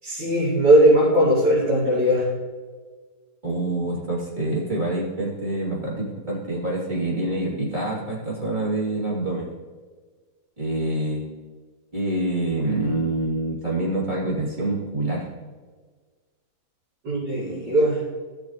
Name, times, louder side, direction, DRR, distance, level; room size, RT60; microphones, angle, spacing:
voice 1, 0.0-2.3 17.0-18.0, right 1 dB, 85° right, -10 dB, 3.7 m, -19 dB
voice 2, 3.4-9.5 10.6-11.3 11.9-15.3, right 2 dB, 25° right, -7 dB, 3.2 m, -26 dB
15.0 x 7.1 x 3.1 m, 1.4 s
omnidirectional pair, 1.8 m